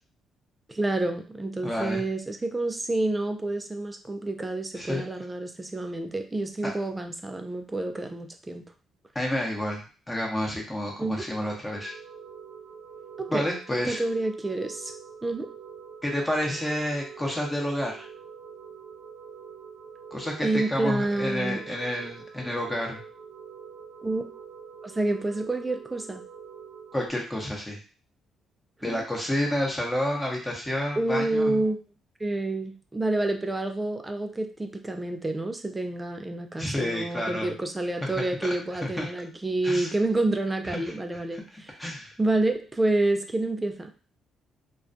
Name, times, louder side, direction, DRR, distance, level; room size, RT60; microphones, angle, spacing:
voice 1, 0.7-8.6 11.0-11.3 13.2-13.5 13.8-14.9 15.2-15.5 20.4-21.6 24.0-24.2 24.8-26.2 28.8-29.0 31.0-31.8 32.2-41.8 42.2-43.9, right 2 dB, 15° right, 5 dB, 0.3 m, -28 dB
voice 2, 1.6-2.0 4.8-5.1 6.6-6.7 9.1-11.9 13.3-14.0 16.0-18.1 20.1-23.0 26.9-27.8 28.8-31.6 36.6-37.5 38.0-38.5 38.8-39.1 39.6-39.9 40.7-41.0 41.3-41.4 41.8-42.1, left 1 dB, 15° left, -1 dB, 0.7 m, -30 dB
sound 1, 11.7-27.1, right 7 dB, 70° right, 0.6 m, -45 dB
2.3 x 2.2 x 2.5 m, 0.36 s
cardioid pair, 90°, 0 cm